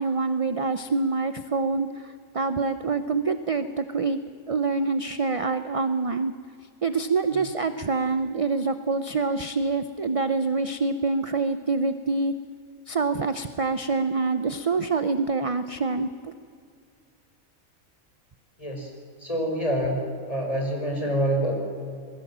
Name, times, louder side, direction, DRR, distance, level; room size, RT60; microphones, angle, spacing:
voice 1, 0.0-4.2 4.5-6.3 6.8-12.3 12.9-16.3, right 4 dB, 35° right, 10 dB, 0.6 m, -26 dB
voice 2, 18.6-18.9 19.2-20.0 20.3-21.6, equal, 25° left, 0 dB, 5.9 m, -26 dB
27.0 x 21.0 x 7.5 m, 2.3 s
omnidirectional pair, 1.5 m